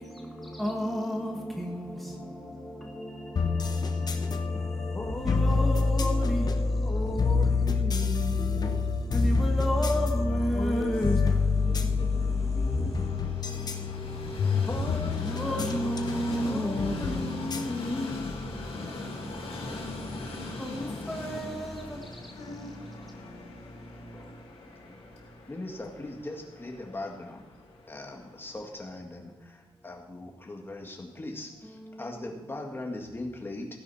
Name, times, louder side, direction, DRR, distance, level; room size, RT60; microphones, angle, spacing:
voice 1, 0.6-1.9 3.0-3.1 5.2-6.4 9.1-11.2 15.2-17.1 20.6-21.8, equal, ahead, 1.3 m, -31 dB
sound 1, 3.4-18.6, left 4 dB, 40° left, 0.9 m, -28 dB
voice 2, 4.9-8.9 14.7-15.2 16.4-18.3 23.7-23.9 24.1-24.3 24.8-25.0 25.5-27.4 27.9-33.7, left 2 dB, 20° left, 1.9 m, -38 dB
voice 3, 10.5-10.9 11.5-12.9 21.7-21.8 22.4-22.9, left 3 dB, 65° left, 2.1 m, -40 dB
Train, 10.6-28.6, left 3 dB, 90° left, 3.4 m, -41 dB
16.0 x 10.5 x 4.3 m
wide cardioid pair, 160°, 10 cm